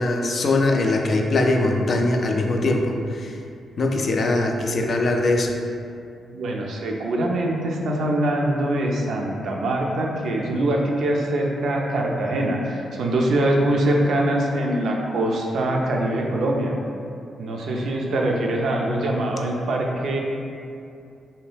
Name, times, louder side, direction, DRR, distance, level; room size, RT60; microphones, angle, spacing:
voice 1, 0.0-3.4 3.8-5.5, left 2 dB, 55° left, 2 dB, 0.3 m, -21 dB
voice 2, 6.3-16.7 17.4-20.2, right 1 dB, 70° right, 0 dB, 0.4 m, -23 dB
2.7 x 2.2 x 3.3 m, 2.5 s
hypercardioid pair, 40°, 0 cm